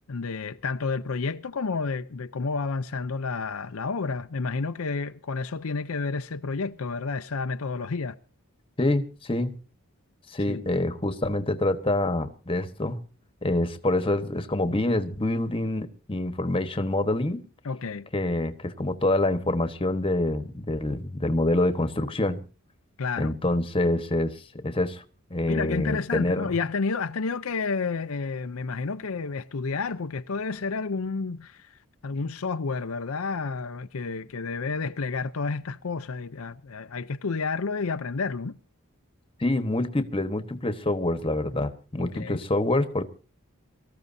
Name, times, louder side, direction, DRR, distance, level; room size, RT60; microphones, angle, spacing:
voice 1, 0.1-8.2 10.5-10.6 17.6-18.1 23.0-23.3 25.4-31.7 32.0-38.5 42.0-42.4, left 4 dB, 70° left, 0.6 m, -30 dB
voice 2, 8.8-9.6 10.3-13.0 13.4-17.4 18.1-22.4 23.2-25.0 25.3-26.5 39.4-43.0, left 1 dB, 25° left, 1.2 m, -26 dB
24.0 x 14.0 x 2.7 m
head